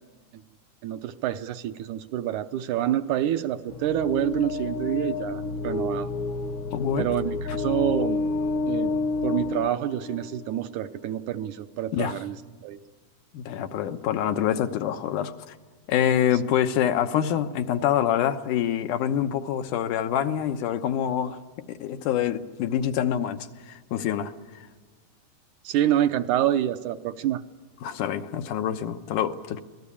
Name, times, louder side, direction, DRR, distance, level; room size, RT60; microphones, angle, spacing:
voice 1, 0.8-6.1 7.0-8.2 8.7-8.9 9.2-12.8 25.6-27.4, right 12 dB, 80° right, 8 dB, 2.3 m, -27 dB
sound 1, 3.7-10.6, left 3 dB, 60° left, 1.4 m, -29 dB
voice 2, 6.7-7.1 11.9-12.1 13.3-15.6 15.9-21.4 21.7-24.3 27.8-29.6, left 10 dB, 85° left, 7 dB, 2.5 m, -26 dB
26.0 x 19.0 x 8.6 m, 1.4 s
omnidirectional pair, 3.5 m